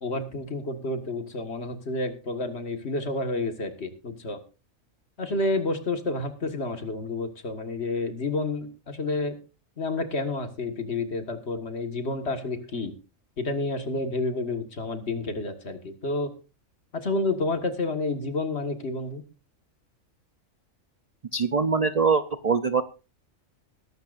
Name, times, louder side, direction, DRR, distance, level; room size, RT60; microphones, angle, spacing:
voice 1, 0.0-4.4 5.2-9.4 9.8-12.9 13.4-16.3 16.9-19.2, left 2 dB, 50° left, 7 dB, 1.9 m, -30 dB
voice 2, 21.3-22.8, right 5 dB, 40° right, 11 dB, 0.5 m, -23 dB
21.0 x 11.5 x 2.5 m, 0.32 s
omnidirectional pair, 1.4 m